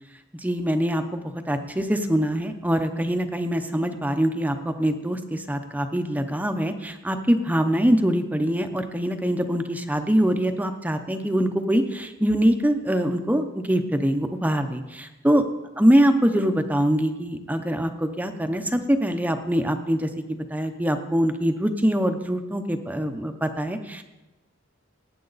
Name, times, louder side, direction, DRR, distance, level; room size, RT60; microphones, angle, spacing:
voice 1, 0.4-15.4 15.8-24.0, equal, 10° right, 7 dB, 0.7 m, -23 dB
18.5 x 9.0 x 4.0 m, 1.1 s
head